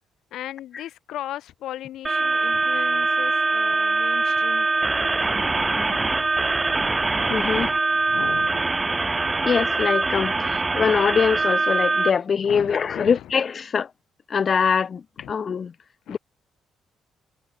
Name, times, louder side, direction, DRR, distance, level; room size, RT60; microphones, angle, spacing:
voice 1, 0.3-6.0 7.4-8.6 10.3-10.6 12.4-13.3 15.2-15.3 16.1-16.2, left 12 dB, 80° left, 4.9 m, -38 dB
sound 1, 2.0-12.1, right 3 dB, 20° right, 2.0 m, -23 dB
voice 2, 7.3-7.7 9.4-13.9 14.3-15.0 15.3-15.7 16.1-16.2, left 6 dB, 45° left, 0.9 m, -23 dB
cardioid pair, 90°, 0 cm